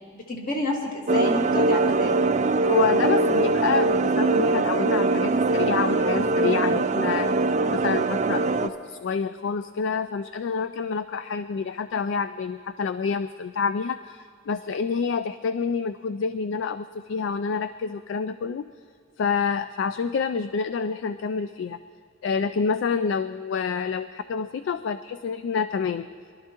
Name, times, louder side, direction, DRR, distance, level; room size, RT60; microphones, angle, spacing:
voice 1, 0.1-2.2, left 1 dB, 45° left, 0 dB, 1.7 m, -29 dB
sound 1, 1.1-8.7, right 3 dB, 35° right, 0.4 m, -22 dB
voice 2, 2.7-7.3 7.7-18.7 19.2-21.8 22.2-26.1, left 5 dB, 60° left, 11 dB, 0.3 m, -28 dB
22.5 x 12.0 x 2.9 m, 2.2 s
head